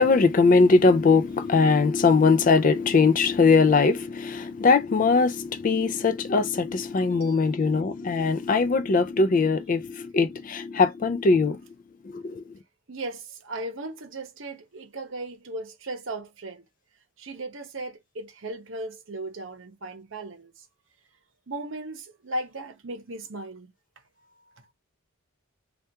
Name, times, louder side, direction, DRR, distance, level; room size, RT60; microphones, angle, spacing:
voice 1, 0.0-11.6 12.1-12.4, left 4 dB, 40° left, 0.3 m, -21 dB
voice 2, 7.0-7.5 12.9-16.6 17.2-20.6 21.5-23.7, right 2 dB, 65° right, 0.8 m, -37 dB
3.3 x 2.3 x 2.8 m
head